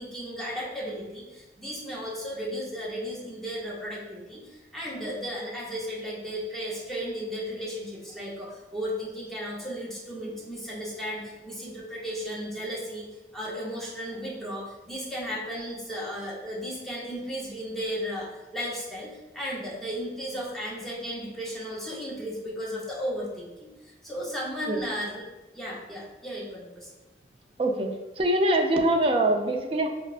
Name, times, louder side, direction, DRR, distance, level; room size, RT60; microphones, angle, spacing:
voice 1, 0.0-13.1 13.3-25.2 25.5-26.9, equal, ahead, -6 dB, 0.7 m, -35 dB
voice 2, 27.6-29.9, right 1 dB, 30° right, 4 dB, 0.3 m, -24 dB
4.8 x 2.2 x 2.4 m, 1.1 s
head